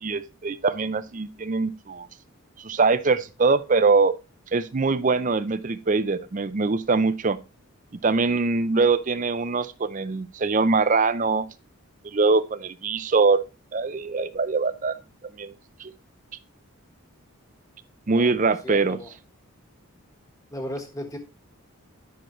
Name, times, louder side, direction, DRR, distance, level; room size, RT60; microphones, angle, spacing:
voice 1, 0.0-2.1 2.6-4.1 4.5-7.4 8.0-11.5 12.0-13.4 13.7-15.0 15.4-15.5 15.8-15.9 18.1-19.0, right 4 dB, 35° right, 0.5 m, -23 dB
voice 2, 18.6-19.1 20.5-21.2, equal, 15° left, 1.4 m, -35 dB
10.0 x 6.1 x 3.1 m
head